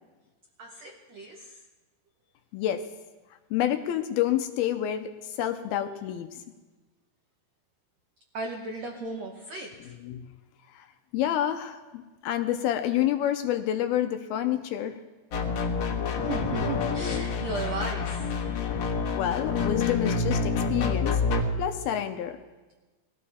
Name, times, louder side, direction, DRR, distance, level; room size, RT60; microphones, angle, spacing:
voice 1, 0.6-1.6 8.3-9.9 16.2-19.2, right 3 dB, 80° right, 2 dB, 1.5 m, -37 dB
voice 2, 2.5-2.9 3.5-6.4 9.8-10.3 10.7-10.9 11.1-15.0 19.2-21.2 21.6-22.4, left 11 dB, 80° left, 7 dB, 2.4 m, -28 dB
sound 1, 15.3-21.4, left 4 dB, 60° left, 1.8 m, -27 dB
20.5 x 14.5 x 4.2 m, 1.2 s
omnidirectional pair, 4.8 m